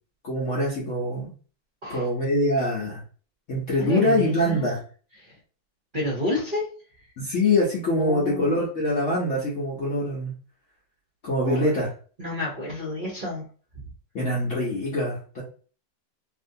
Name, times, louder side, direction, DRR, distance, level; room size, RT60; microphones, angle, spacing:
voice 1, 0.2-1.3 1.9-3.0 3.5-4.8 7.2-10.3 11.2-11.9 14.1-15.4, left 1 dB, 55° left, -6 dB, 1.0 m, -24 dB
voice 2, 3.8-4.7 5.9-6.6 8.0-8.5 11.4-11.7 12.2-13.4, left 1 dB, 40° right, -6 dB, 0.8 m, -30 dB
2.9 x 2.6 x 2.6 m, 0.39 s
omnidirectional pair, 2.0 m